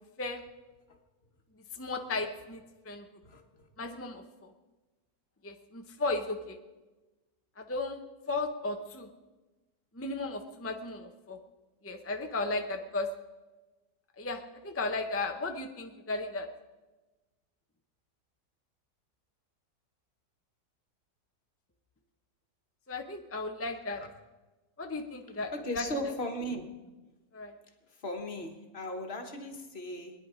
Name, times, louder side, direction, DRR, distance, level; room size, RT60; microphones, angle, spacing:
voice 1, 1.7-2.6 2.9-3.1 3.8-4.2 5.4-6.6 7.6-9.1 10.0-11.4 11.8-13.1 14.2-16.5 22.9-24.0 24.8-26.2 27.3-27.5, left 3 dB, 20° left, 4 dB, 0.3 m, -35 dB
voice 2, 25.5-26.8 28.0-30.1, left 1 dB, 40° left, 4 dB, 1.5 m, -37 dB
22.0 x 10.5 x 5.0 m, 1.2 s
omnidirectional pair, 1.9 m